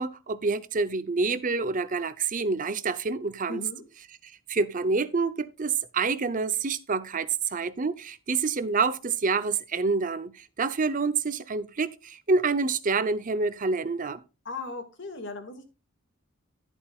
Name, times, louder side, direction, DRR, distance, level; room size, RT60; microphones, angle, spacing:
voice 1, 0.0-3.6 4.2-14.2, right 4 dB, 40° right, 0.7 m, -27 dB
voice 2, 3.5-3.8 14.5-15.6, left 3 dB, 60° left, 2.2 m, -37 dB
11.0 x 10.5 x 2.4 m
head